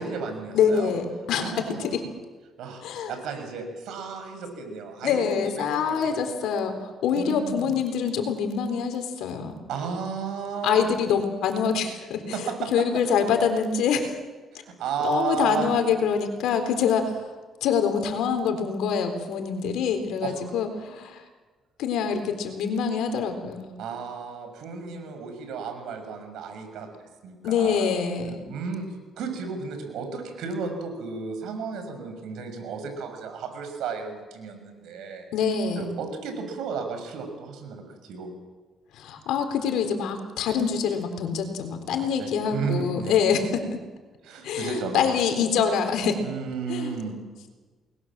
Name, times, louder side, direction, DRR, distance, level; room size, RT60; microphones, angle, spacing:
voice 1, 0.0-0.9 1.3-2.0 2.6-2.8 3.1-6.2 7.1-7.7 9.7-10.9 12.3-12.7 14.5-15.7 20.2-20.4 23.8-26.9 27.2-27.9 28.5-28.8 29.2-35.3 35.7-38.3 42.2-43.3 44.2-45.0 46.2-47.2, right 5 dB, 85° right, 6 dB, 6.5 m, -33 dB
voice 2, 0.5-2.1 2.8-3.2 5.0-9.6 10.6-14.2 15.0-17.3 17.6-21.2 21.8-23.7 27.4-28.5 35.3-35.9 38.9-43.8 44.4-46.2 46.7-47.0, left 6 dB, 85° left, 6 dB, 3.9 m, -25 dB
29.5 x 21.0 x 7.6 m, 1.3 s
cardioid pair, 90°, 0 cm